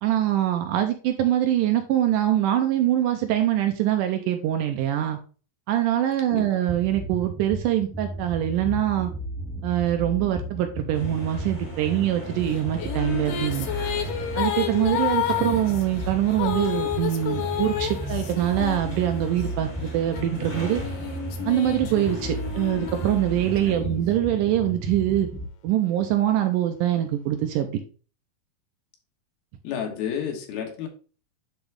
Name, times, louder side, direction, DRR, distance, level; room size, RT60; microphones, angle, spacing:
voice 1, 0.0-5.2 5.7-9.1 9.6-13.7 14.4-20.8 21.5-25.3 25.6-27.8, right 12 dB, 80° right, 6 dB, 2.0 m, -24 dB
sound 1, 6.7-25.4, right 1 dB, 5° left, 0.6 m, -35 dB
sound 2, 10.9-23.7, left 1 dB, 45° left, 0.4 m, -40 dB
sound 3, 12.5-19.5 20.1-23.8, left 10 dB, 75° left, 2.3 m, -31 dB
voice 2, 15.4-15.7 23.7-24.0 29.6-30.9, left 7 dB, 90° left, 3 dB, 3.1 m, -32 dB
10.0 x 3.5 x 3.4 m, 0.38 s
omnidirectional pair, 4.2 m